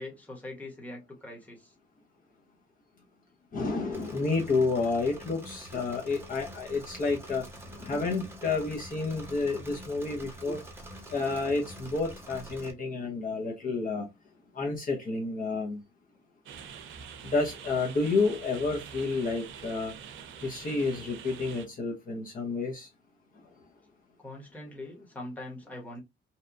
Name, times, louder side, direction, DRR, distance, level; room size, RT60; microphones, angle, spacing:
voice 1, 0.0-1.7 24.2-26.0, left 1 dB, 10° left, 1.0 m, -42 dB
voice 2, 3.5-7.4 7.8-10.6 11.1-14.1 14.6-15.8 17.2-19.9 20.4-22.9, left 3 dB, 45° left, 0.6 m, -30 dB
Engine / Mechanisms, 3.9-12.7, equal, 10° right, 0.6 m, -46 dB
sound 1, 16.5-21.7, right 7 dB, 80° right, 0.5 m, -45 dB
2.8 x 2.2 x 2.4 m
cardioid pair, 130°, 20 cm